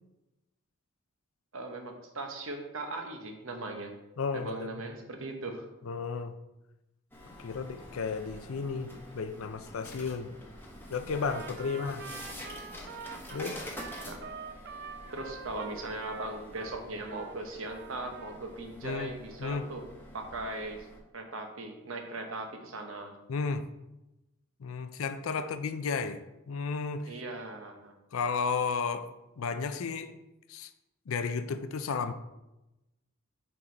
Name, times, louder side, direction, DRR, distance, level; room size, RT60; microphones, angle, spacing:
voice 1, 1.5-3.9 4.3-5.7 11.6-11.9 14.0-14.2 15.1-19.8 20.1-20.9 21.1-23.2 27.1-27.9, right 2 dB, 70° right, 4 dB, 1.0 m, -39 dB
voice 2, 4.2-4.8 5.8-6.3 7.4-10.3 10.9-12.0 13.3-13.7 18.8-19.1 19.4-19.7 23.3-23.7 24.6-27.1 28.1-30.1 30.5-30.7 31.1-32.1, left 5 dB, 80° left, 10 dB, 0.5 m, -33 dB
sound 1, 7.1-21.0, left 1 dB, 10° left, 1.0 m, -47 dB
Trumpet, 11.1-17.4 17.6-18.4, right 6 dB, 55° right, 0.5 m, -45 dB
5.9 x 4.7 x 4.0 m, 0.97 s
head